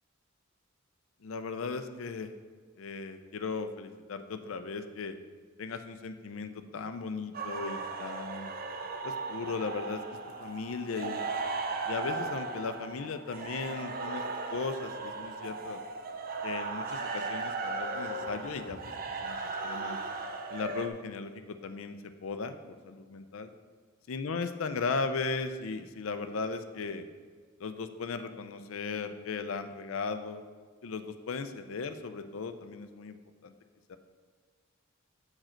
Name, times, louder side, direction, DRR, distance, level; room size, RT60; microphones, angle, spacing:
voice 1, 1.2-2.3 2.8-5.1 5.6-8.5 9.0-10.0 10.4-11.3 11.9-14.2 14.5-15.8 16.4-18.8 19.2-19.4 19.6-20.0 20.5-22.0 22.2-23.5 24.1-27.1 27.6-30.4 30.8-33.2 33.4-33.5 33.9-34.0, left 4 dB, 75° left, 9 dB, 0.5 m, -37 dB
sound 1, 7.3-20.9, right 3 dB, 45° right, 0.5 m, -37 dB
7.7 x 4.8 x 4.4 m, 1.6 s
head